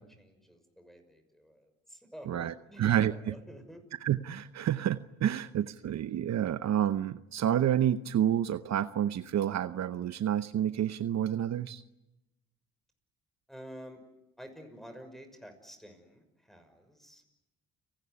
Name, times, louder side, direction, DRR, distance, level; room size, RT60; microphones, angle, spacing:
voice 1, 0.0-3.9 5.8-6.0 13.5-14.0 14.4-17.2, equal, ahead, 8 dB, 6.2 m, -50 dB
voice 2, 2.3-3.3 4.0-11.8, right 10 dB, 60° right, 12 dB, 0.9 m, -29 dB
30.0 x 18.5 x 9.8 m, 0.95 s
cardioid pair, 90°, 30 cm